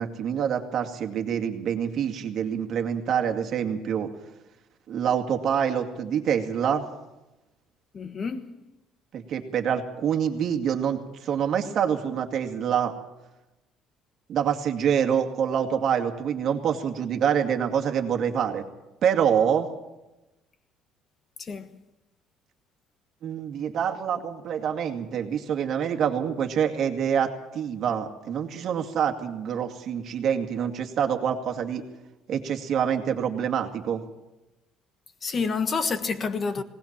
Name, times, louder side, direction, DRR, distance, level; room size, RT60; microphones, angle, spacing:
voice 1, 0.0-4.1 4.9-6.9 9.1-12.9 14.3-18.6 19.0-19.7 23.2-31.8 32.3-34.0, right 8 dB, 50° right, 2.2 m, -26 dB
voice 2, 7.9-8.5 21.4-21.8 35.2-36.6, left 5 dB, 30° left, 1.4 m, -28 dB
20.0 x 18.5 x 7.5 m
cardioid pair, 140°, 0 cm